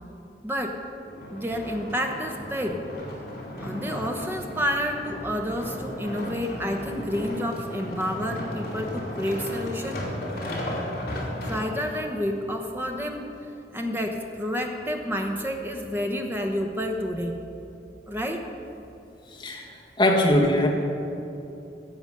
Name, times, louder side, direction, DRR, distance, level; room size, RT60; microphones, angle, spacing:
voice 1, 0.4-0.8 1.3-2.8 3.6-10.0 11.4-13.2 13.7-17.3 18.1-18.4, equal, 10° right, 3 dB, 1.0 m, -29 dB
sound 1, 1.1-12.1 12.7-12.8, left 1 dB, 60° left, 2.9 m, -35 dB
voice 2, 20.0-20.7, left 1 dB, 25° left, -3 dB, 1.6 m, -20 dB
15.5 x 7.0 x 6.7 m, 2.8 s
head